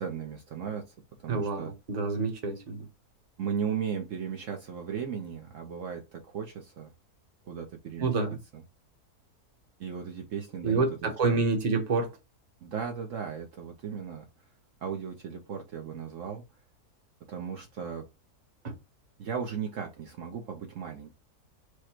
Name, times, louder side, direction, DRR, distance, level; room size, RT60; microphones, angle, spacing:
voice 1, 0.0-1.7 3.4-6.9 7.4-8.1 8.5-8.6 9.8-11.4 12.6-14.3 14.8-16.4 17.3-18.1 19.2-21.1, right 7 dB, 60° right, 1.0 m, -36 dB
voice 2, 1.3-2.9 8.0-8.4 10.6-12.1 18.6-18.7, right 4 dB, 30° right, 0.9 m, -28 dB
4.9 x 2.2 x 4.4 m
omnidirectional pair, 1.7 m